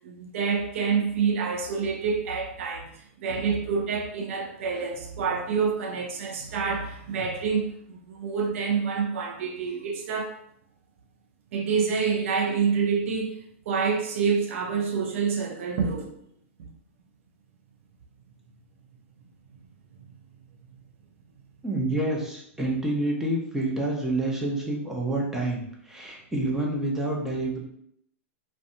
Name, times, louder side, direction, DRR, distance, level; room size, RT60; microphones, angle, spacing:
voice 1, 0.0-10.4 11.5-16.1, right 5 dB, 65° right, 0.4 m, -27 dB
voice 2, 21.6-27.6, right 2 dB, 5° right, 0.6 m, -28 dB
2.6 x 2.1 x 2.6 m
hypercardioid pair, 120°, 7 cm